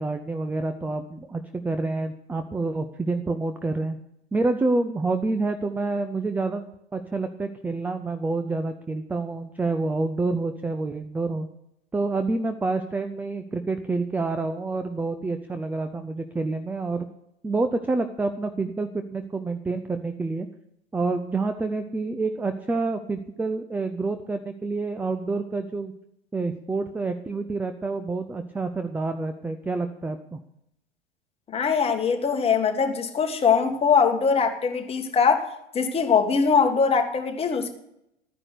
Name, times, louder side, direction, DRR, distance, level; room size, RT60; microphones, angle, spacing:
voice 1, 0.0-4.0 4.3-11.5 11.9-17.1 17.4-20.5 20.9-25.9 26.3-30.4, right 3 dB, 5° right, 8 dB, 0.5 m, -28 dB
voice 2, 31.5-35.5 35.7-37.7, left 6 dB, 15° left, 5 dB, 1.8 m, -22 dB
13.0 x 9.8 x 6.6 m, 0.80 s
figure-of-eight pair, 95°, 33 cm